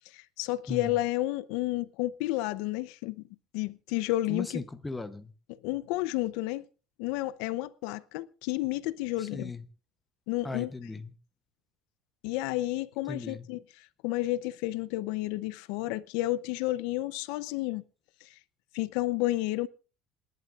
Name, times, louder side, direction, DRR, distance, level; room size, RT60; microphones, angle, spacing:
voice 1, 0.1-3.2 3.5-4.6 5.5-6.7 7.0-9.5 10.3-10.7 12.2-17.8 18.2-18.3 18.7-19.7, left 17 dB, 70° left, 0.6 m, -31 dB
voice 2, 4.3-5.3 9.2-9.6 10.4-11.1 13.1-13.5, left 3 dB, 10° left, 0.8 m, -37 dB
27.5 x 11.0 x 2.5 m
cardioid pair, 180°, 0 cm